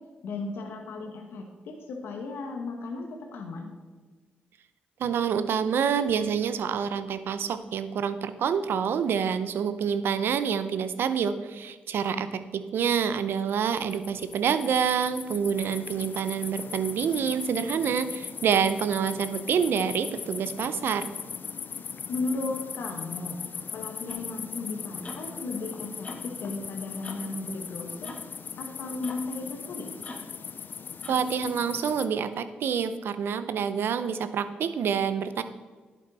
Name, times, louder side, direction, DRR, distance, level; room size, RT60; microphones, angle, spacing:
voice 1, 0.2-3.7 12.1-12.2 22.1-23.4 23.7-28.1 28.6-29.9, left 3 dB, 80° left, 2 dB, 1.3 m, -35 dB
voice 2, 5.0-12.3 12.7-21.1 31.1-35.4, right 7 dB, 75° right, 12 dB, 0.7 m, -27 dB
sound 1, 13.4-32.1, left 6 dB, 55° left, 0.6 m, -39 dB
sound 2, 24.1-24.3 25.0-25.3 26.0-26.3 27.0-27.3 28.0-28.3 29.0-29.3 30.0-30.4 31.0-31.3, left 2 dB, 35° left, 1.7 m, -42 dB
11.5 x 8.2 x 4.2 m, 1.3 s
cardioid pair, 65°, 4 cm